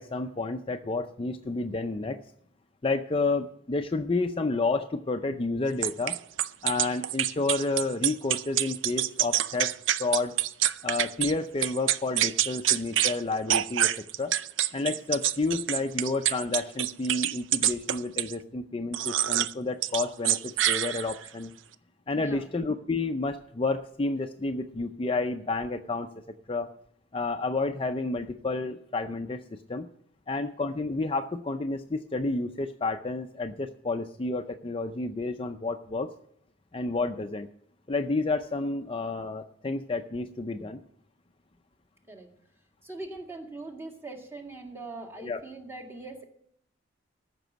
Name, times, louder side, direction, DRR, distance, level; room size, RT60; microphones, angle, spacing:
voice 1, 0.0-2.2 2.8-6.2 6.6-9.7 10.0-10.4 10.8-13.9 14.2-14.3 14.7-21.5 22.1-26.1 26.5-26.7 27.1-29.4 29.7-29.9 30.3-36.1 36.7-37.5 37.9-40.8 45.2-45.4, left 3 dB, 30° left, 7 dB, 0.5 m, -30 dB
sound 1, 5.8-11.3 11.6-13.2 13.5-18.4 18.9-19.5 19.8-21.3, right 12 dB, 90° right, 0.5 m, -26 dB
voice 2, 22.1-22.5 42.1-42.3 42.8-46.3, right 2 dB, 15° right, 2 dB, 1.9 m, -41 dB
14.5 x 6.1 x 7.9 m, 0.69 s
head